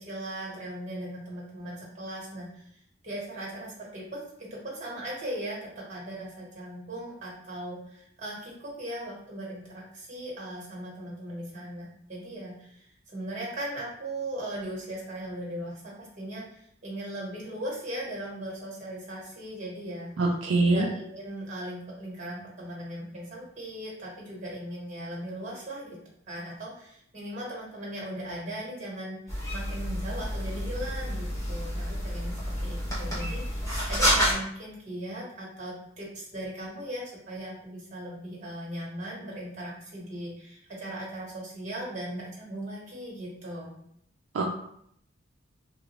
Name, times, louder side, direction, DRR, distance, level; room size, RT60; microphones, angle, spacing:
voice 1, 0.0-20.1 20.6-26.0 26.3-29.2 29.5-43.8, right 1 dB, 40° right, -4 dB, 1.3 m, -38 dB
voice 2, 20.2-20.9 44.3-44.4, right 3 dB, 70° right, 0 dB, 0.4 m, -23 dB
sound 1, 29.3-34.3, equal, 15° left, 0.9 m, -29 dB
3.1 x 2.4 x 3.0 m, 0.71 s
head